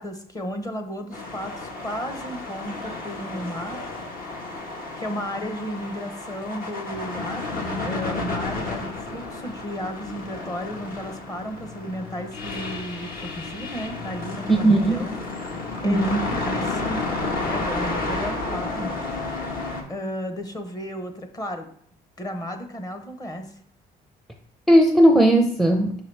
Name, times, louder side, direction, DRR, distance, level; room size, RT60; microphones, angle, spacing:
voice 1, 0.0-3.8 5.0-15.2 15.8-17.1 17.5-19.1 19.9-21.7 22.2-23.5, equal, 20° left, 7 dB, 0.9 m, -34 dB
sound 1, 1.1-19.8, left 3 dB, 55° left, 1.4 m, -31 dB
voice 2, 14.5-15.0 15.8-16.2 24.7-25.9, right 1 dB, ahead, 3 dB, 0.6 m, -17 dB
5.9 x 5.6 x 3.4 m, 0.64 s
cardioid pair, 110°, 17 cm